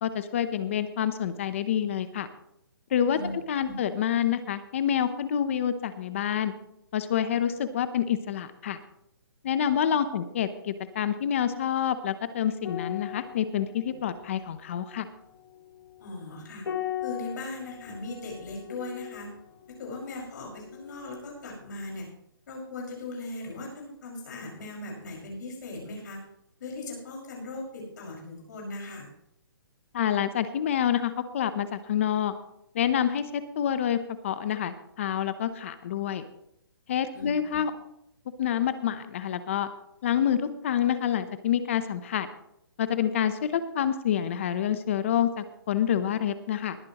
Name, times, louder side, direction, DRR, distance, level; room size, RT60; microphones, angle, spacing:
voice 1, 0.0-2.3 2.9-3.2 3.5-6.5 6.9-8.8 9.4-15.1 29.9-32.3 32.7-34.0 34.2-36.2 36.9-37.7 38.4-39.7 40.0-42.3 42.8-46.8, left 9 dB, 30° left, 12 dB, 0.8 m, -27 dB
sound 1, 12.6-21.3 21.6-21.8, left 11 dB, 65° left, 2.6 m, -40 dB
voice 2, 16.0-16.6 17.0-19.3 19.8-22.1 22.5-26.2 26.6-29.1 37.1-37.6, left 2 dB, 50° left, -1 dB, 5.5 m, -38 dB
20.5 x 10.0 x 3.0 m, 0.78 s
hypercardioid pair, 170°, 13 cm